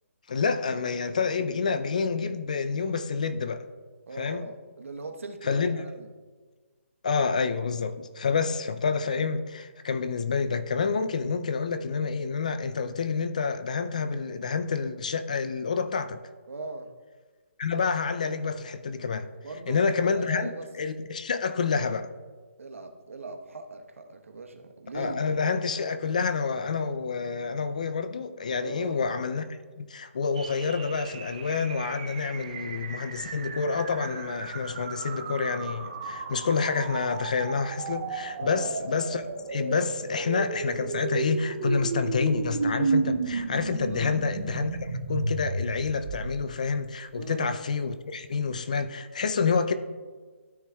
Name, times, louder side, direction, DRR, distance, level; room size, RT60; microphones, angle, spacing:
voice 1, 0.3-3.6 4.2-4.5 5.4-5.8 7.0-16.2 17.6-19.3 19.7-20.5 20.7-22.1 24.9-39.2 39.5-49.7, left 5 dB, 30° left, 0.4 m, -28 dB
voice 2, 4.1-6.1 16.5-16.9 19.4-20.7 22.6-25.4 28.6-29.0 38.4-38.7 43.9-44.2 47.1-47.5, right 3 dB, 70° right, 1.1 m, -40 dB
sound 1, 30.4-46.6, right 4 dB, 30° right, 0.6 m, -33 dB
13.0 x 6.1 x 2.3 m
hypercardioid pair, 175°, 7 cm